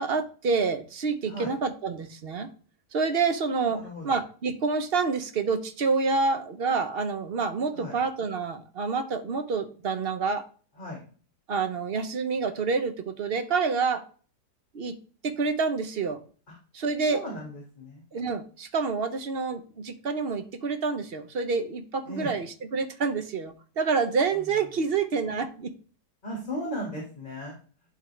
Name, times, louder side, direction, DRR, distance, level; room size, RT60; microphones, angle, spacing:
voice 1, 0.0-2.5 2.9-10.5 11.5-14.0 14.7-14.9 15.2-16.2 16.7-17.3 18.1-25.7, right 4 dB, 50° right, 9 dB, 0.7 m, -28 dB
voice 2, 3.7-4.2 7.7-8.0 10.8-11.0 17.1-18.0 22.1-22.4 26.2-27.5, equal, 30° left, -2 dB, 2.1 m, -36 dB
11.5 x 3.8 x 3.2 m, 0.40 s
omnidirectional pair, 1.8 m